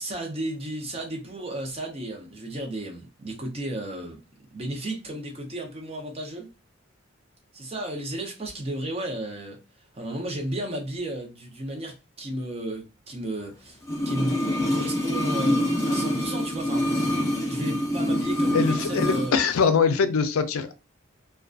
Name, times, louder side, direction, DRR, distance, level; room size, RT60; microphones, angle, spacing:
voice 1, 0.0-4.2 4.5-6.5 7.5-9.6 9.9-13.8 14.0-14.4 14.7-16.9 17.5-19.4, right 1 dB, 30° right, 0.5 m, -33 dB
sound 1, 13.8-19.3 19.6-19.7, equal, 15° left, 0.4 m, -25 dB
voice 2, 18.5-20.7, left 5 dB, 90° left, 0.4 m, -23 dB
2.3 x 2.2 x 2.4 m
head